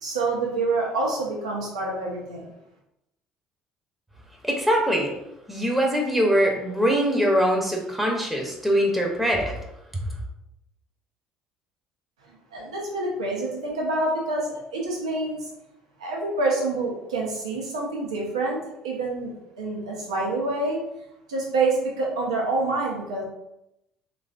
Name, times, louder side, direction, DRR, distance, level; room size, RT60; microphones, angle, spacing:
voice 1, 0.0-2.5 12.5-15.5 16.0-18.6 18.8-20.8 21.3-23.2, right 2 dB, 85° right, -2 dB, 0.7 m, -27 dB
voice 2, 4.4-5.1 5.5-9.5 9.9-10.0, equal, 5° right, -1 dB, 0.7 m, -22 dB
3.2 x 2.5 x 2.4 m, 0.85 s
hypercardioid pair, 60°, 3 cm